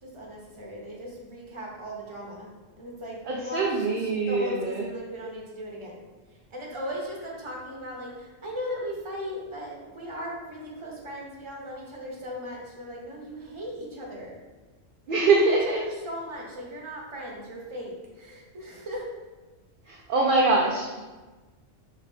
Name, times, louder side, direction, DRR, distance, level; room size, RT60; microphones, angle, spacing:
voice 1, 0.0-6.0 6.5-14.3 15.1-19.1, equal, 25° right, -3 dB, 0.8 m, -37 dB
voice 2, 3.3-4.8 15.1-15.8 19.9-21.0, right 3 dB, 60° right, -2 dB, 0.6 m, -23 dB
5.6 x 2.5 x 3.3 m, 1.2 s
omnidirectional pair, 1.3 m